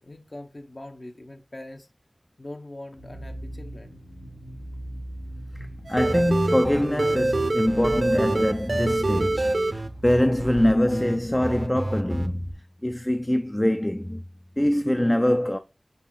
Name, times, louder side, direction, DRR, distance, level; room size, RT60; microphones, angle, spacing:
voice 1, 0.0-1.9 2.4-4.0, left 1 dB, 50° left, 1.0 m, -42 dB
sound 1, 2.9-12.5, right 1 dB, 90° left, 2.9 m, -40 dB
voice 2, 5.9-12.5 12.8-14.2 14.6-15.6, left 1 dB, 20° left, 0.4 m, -23 dB
sound 2, 5.9-11.2 11.4-12.3, right 2 dB, 65° right, 0.6 m, -26 dB
5.5 x 5.1 x 4.0 m
wide cardioid pair, 55°, 0 cm